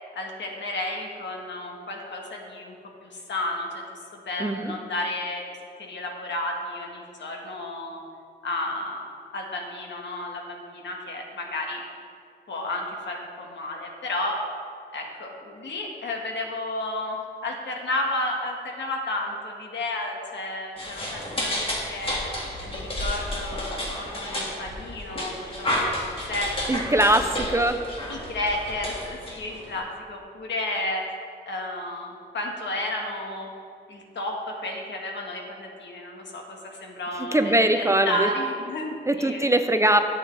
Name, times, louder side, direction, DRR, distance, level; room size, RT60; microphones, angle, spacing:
voice 1, 0.1-2.7 3.0-3.9 4.2-5.4 5.8-8.0 8.4-9.1 9.3-11.8 12.5-14.4 14.9-22.2 22.6-25.9 26.3-26.8 27.1-27.2 28.1-31.0 31.4-33.5 33.9-39.4, left 1 dB, 75° left, 0 dB, 1.6 m, -32 dB
voice 2, 4.4-4.7 26.7-27.8 37.3-38.3 39.1-40.0, right 1 dB, 15° right, 7 dB, 0.4 m, -21 dB
sound 1, 20.8-29.8, left 1 dB, 30° left, 2.0 m, -31 dB
12.5 x 8.7 x 3.3 m, 2.3 s
wide cardioid pair, 135°, 19 cm